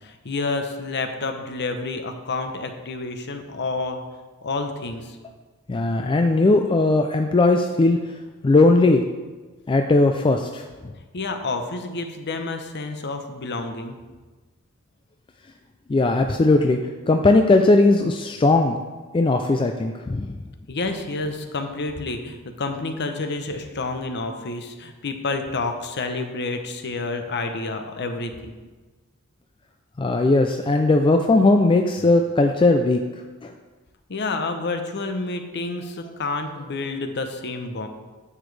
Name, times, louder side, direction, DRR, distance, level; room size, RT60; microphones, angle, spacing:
voice 1, 0.0-4.0 4.4-5.2 11.1-14.0 20.7-28.6 34.1-37.9, left 3 dB, 50° left, 6 dB, 0.8 m, -29 dB
voice 2, 5.7-8.0 8.4-9.0 9.7-10.9 15.9-16.8 17.1-18.8 19.1-20.3 30.0-33.0 33.4-33.5, left 2 dB, 25° left, 4 dB, 0.4 m, -18 dB
9.8 x 7.0 x 3.3 m, 1.3 s
head